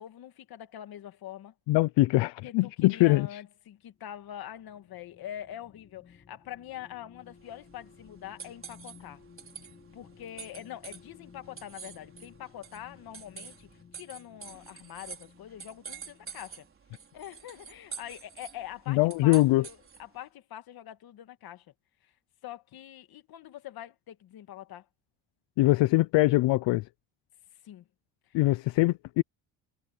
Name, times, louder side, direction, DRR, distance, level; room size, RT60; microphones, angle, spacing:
voice 1, 0.0-1.5 2.4-9.2 9.9-16.7 17.1-21.7 22.0-22.1 22.4-24.9 27.6-27.9 28.3-28.4, left 11 dB, 50° left, 1.9 m, -44 dB
voice 2, 1.7-3.3 18.9-19.7 25.6-26.8 28.3-29.2, left 19 dB, 70° left, 0.7 m, -23 dB
sound 1, 3.8-16.7 17.2-17.3, left 6 dB, 25° left, 2.7 m, -57 dB
sound 2, 7.3-20.2, right 6 dB, 30° right, 4.3 m, -48 dB
cardioid pair, 165°, 45 cm